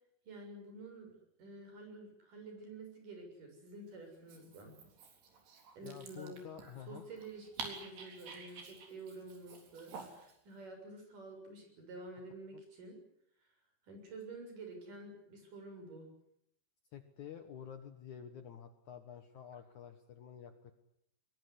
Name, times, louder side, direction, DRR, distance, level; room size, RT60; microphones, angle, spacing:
voice 1, 0.2-1.1 1.4-4.8 5.8-6.4 6.9-13.0 13.9-16.1, right 2 dB, 50° right, 4 dB, 8.4 m, -49 dB
Dog, 4.1-10.4, right 4 dB, 75° right, 5.9 m, -50 dB
voice 2, 5.8-7.1 12.5-12.6 16.9-20.7, left 8 dB, 60° left, 8 dB, 2.3 m, -50 dB
22.5 x 22.0 x 9.8 m, 0.74 s
omnidirectional pair, 4.7 m